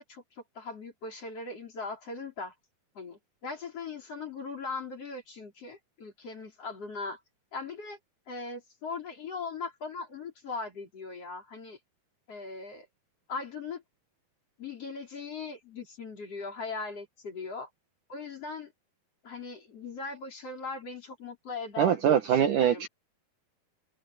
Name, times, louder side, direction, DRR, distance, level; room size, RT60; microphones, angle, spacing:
voice 1, 0.0-2.5 3.0-7.2 7.5-8.0 8.3-11.8 12.3-12.9 13.3-13.8 14.6-17.7 18.1-18.7 19.2-22.9, left 4 dB, 40° left, 5.3 m, -39 dB
voice 2, 21.8-22.9, right 9 dB, 65° right, 2.4 m, -23 dB
omnidirectional pair, 4.5 m